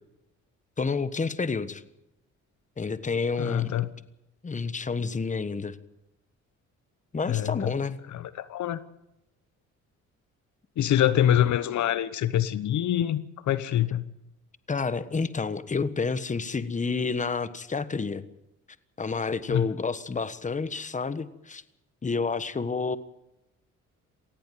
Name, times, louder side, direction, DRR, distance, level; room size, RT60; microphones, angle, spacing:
voice 1, 0.8-1.8 2.8-3.7 4.4-5.8 7.1-8.0 14.7-18.2 19.0-21.6 22.0-23.0, left 4 dB, 25° left, 14 dB, 1.3 m, -29 dB
voice 2, 3.4-3.9 7.3-7.7 8.1-8.8 10.8-14.0 19.5-19.7, left 11 dB, 70° left, 15 dB, 1.0 m, -25 dB
18.5 x 16.0 x 9.3 m, 0.87 s
cardioid pair, 90°, 30 cm